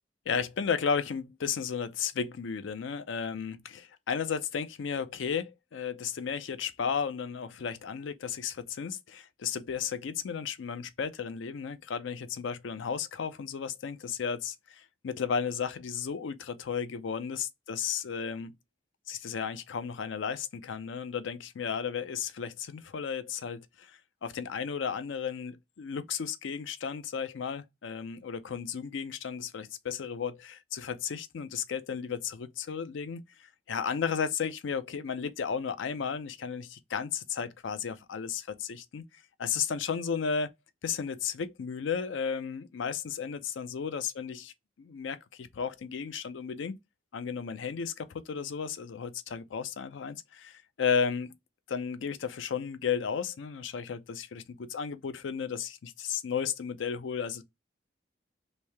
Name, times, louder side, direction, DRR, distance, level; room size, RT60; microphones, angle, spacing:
voice 1, 0.3-18.5 19.1-33.2 33.7-39.0 39.4-40.5 40.8-44.5 44.8-46.7 47.1-51.4 51.7-57.4, left 6 dB, 85° left, 0.4 m, -34 dB
3.1 x 2.7 x 3.2 m
head